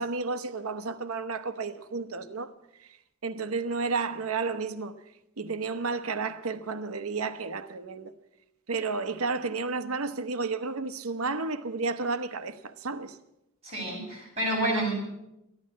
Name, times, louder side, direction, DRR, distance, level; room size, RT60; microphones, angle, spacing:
voice 1, 0.0-2.5 2.8-3.0 3.2-5.0 5.4-8.1 8.7-13.2 14.7-14.9, right 4 dB, 80° right, 0.9 m, -32 dB
voice 2, 13.6-14.9, right 1 dB, 30° right, 7.8 m, -29 dB
14.0 x 11.5 x 8.5 m
head